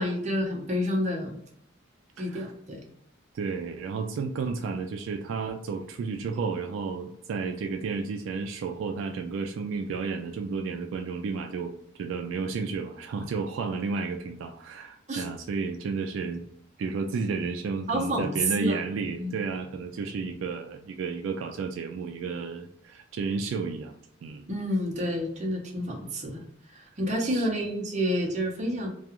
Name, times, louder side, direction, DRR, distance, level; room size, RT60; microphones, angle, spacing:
voice 1, 0.0-1.4 2.2-2.8 15.1-15.2 17.9-18.8 19.2-19.3 24.5-26.4 26.7-28.9, equal, 40° right, 0 dB, 0.6 m, -29 dB
voice 2, 2.2-2.5 3.3-16.4 16.8-24.0 24.2-24.5 27.2-27.5, right 4 dB, 80° right, 5 dB, 0.3 m, -32 dB
2.3 x 2.3 x 2.8 m, 0.69 s
head